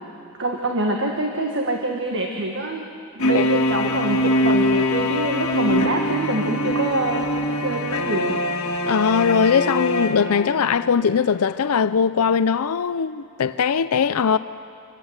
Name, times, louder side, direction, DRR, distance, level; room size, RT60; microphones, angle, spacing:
voice 1, 0.4-2.9 3.1-8.4, right 2 dB, 55° right, 1.7 m, -25 dB
sound 1, 3.2-10.9, left 1 dB, 60° left, 1.8 m, -23 dB
voice 2, 8.9-14.4, left 6 dB, 80° left, 0.5 m, -20 dB
27.0 x 17.5 x 8.1 m
head